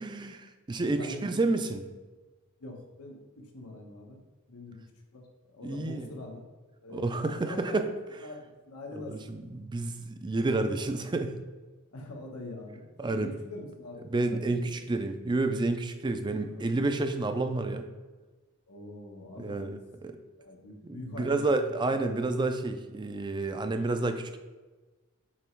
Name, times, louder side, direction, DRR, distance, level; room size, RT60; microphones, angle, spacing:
voice 1, 0.0-1.8 5.6-6.1 6.9-7.8 9.1-11.3 13.0-13.3 14.1-17.9 19.4-20.1 20.8-24.4, right 2 dB, 20° right, 8 dB, 0.4 m, -30 dB
voice 2, 0.8-1.5 2.6-4.2 4.5-4.8 5.1-5.3 5.5-6.5 6.8-7.8 8.2-9.2 11.9-12.9 13.1-14.7 16.3-16.7 17.3-17.4 18.7-20.1 20.4-22.1, left 2 dB, 90° left, 1 dB, 1.1 m, -44 dB
7.1 x 3.0 x 4.5 m, 1.2 s
head